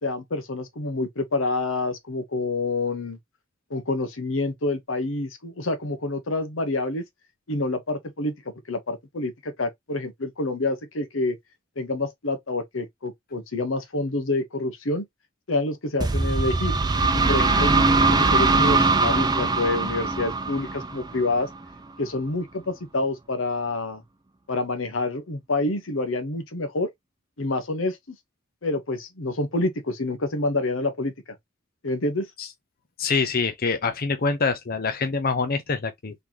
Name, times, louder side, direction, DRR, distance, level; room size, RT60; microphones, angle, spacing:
voice 1, 0.0-3.2 3.7-7.0 7.5-8.3 8.7-11.4 11.8-15.0 15.5-16.8 17.3-21.5 22.0-24.0 24.5-26.9 27.4-28.2 28.6-31.1 31.8-32.3, left 2 dB, 85° left, 1.1 m, -27 dB
sound 1, 16.0-21.6, right 3 dB, 20° right, 0.5 m, -21 dB
voice 2, 33.0-36.1, left 4 dB, 50° left, 0.7 m, -25 dB
4.0 x 3.3 x 2.8 m
head